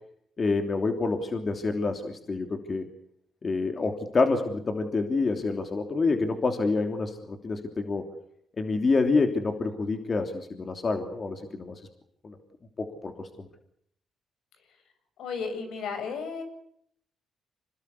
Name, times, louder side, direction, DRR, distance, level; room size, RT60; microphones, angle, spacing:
voice 1, 0.4-2.9 3.4-8.1 8.6-11.7 12.2-12.4 12.8-13.5, left 3 dB, 35° left, 5 dB, 3.1 m, -27 dB
voice 2, 15.2-16.4, left 5 dB, 80° left, 7 dB, 7.3 m, -33 dB
26.5 x 20.5 x 8.4 m, 0.70 s
cardioid pair, 90°, 0 cm